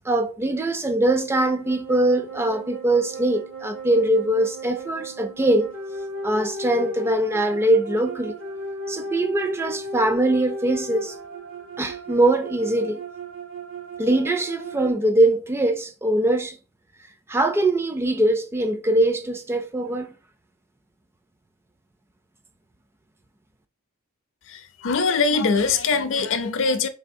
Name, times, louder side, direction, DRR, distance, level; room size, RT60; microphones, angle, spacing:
voice 1, 0.0-5.7 6.2-8.4 8.9-11.2 11.8-13.0 14.0-16.6 17.3-20.1, right 1 dB, 10° right, 0.3 m, -22 dB
sound 1, 1.5-14.9, right 1 dB, 60° right, 0.8 m, -36 dB
voice 2, 24.5-26.9, left 4 dB, 60° left, 0.5 m, -22 dB
3.9 x 3.4 x 2.6 m
head